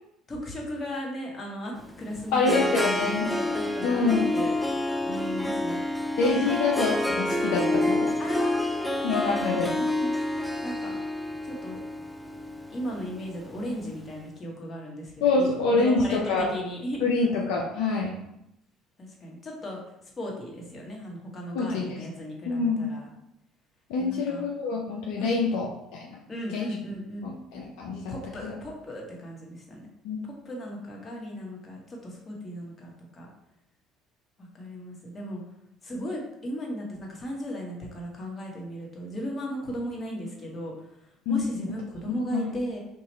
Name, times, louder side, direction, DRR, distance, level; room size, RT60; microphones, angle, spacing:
voice 1, 0.3-6.7 8.2-9.4 9.7-10.1 10.6-11.0 11.4-11.8 12.7-17.0 19.0-19.8 20.2-23.1 24.0-24.5 25.2-25.4 26.3-27.4 28.1-29.9 30.2-33.3 34.4-35.4 35.8-42.8, equal, 30° left, -1 dB, 1.2 m, -36 dB
Harp, 1.8-13.9, left 1 dB, ahead, 0.4 m, -28 dB
voice 2, 2.3-3.3 3.8-4.3 6.2-8.1 9.0-9.7 15.2-16.5 17.0-18.1 21.5-22.0 22.5-22.9 23.9-25.7 25.9-26.2 26.5-26.7 27.2-28.1 28.4-28.5 30.0-30.2 41.3-41.7 42.1-42.5, left 3 dB, 75° left, -2 dB, 0.5 m, -26 dB
2.9 x 2.4 x 4.1 m, 0.81 s
hypercardioid pair, 65°, 0 cm